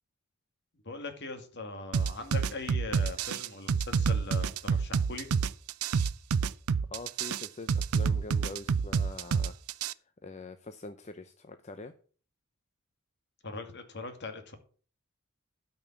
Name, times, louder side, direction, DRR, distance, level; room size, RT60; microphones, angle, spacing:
voice 1, 0.8-5.3 13.4-14.5, left 3 dB, 50° left, 7 dB, 2.1 m, -40 dB
sound 1, 1.9-9.9, right 6 dB, 75° right, 0.5 m, -28 dB
voice 2, 6.9-9.5 10.2-11.9, left 2 dB, 30° left, 9 dB, 0.7 m, -44 dB
12.5 x 5.4 x 7.1 m, 0.43 s
head